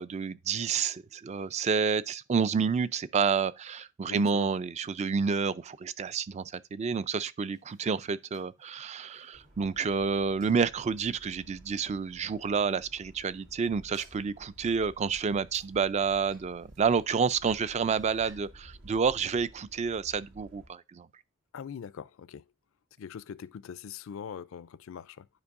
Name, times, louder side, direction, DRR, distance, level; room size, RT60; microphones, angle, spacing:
voice 1, 0.0-21.1, right 5 dB, 35° right, 0.3 m, -29 dB
voice 2, 4.1-4.5 21.5-22.5 23.0-25.3, left 7 dB, 70° left, 0.4 m, -42 dB
sound 1, 7.5-11.8 12.4-12.7 13.9-14.3 15.5-18.5, right 2 dB, 60° right, 3.3 m, -59 dB
sound 2, 9.3-20.7, equal, 75° right, 1.7 m, -54 dB
9.7 x 5.2 x 2.5 m
head